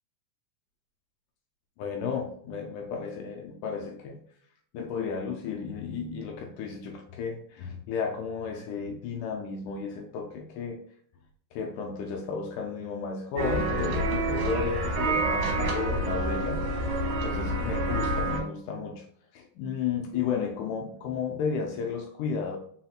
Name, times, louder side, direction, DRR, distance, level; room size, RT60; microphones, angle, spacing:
voice 1, 1.8-4.2 4.7-10.8 11.5-19.0 19.3-22.6, left 6 dB, 85° left, 2 dB, 1.8 m, -33 dB
sound 1, 13.4-18.4, right 1 dB, 65° right, 2.1 m, -28 dB
4.9 x 4.2 x 2.3 m, 0.64 s
omnidirectional pair, 4.2 m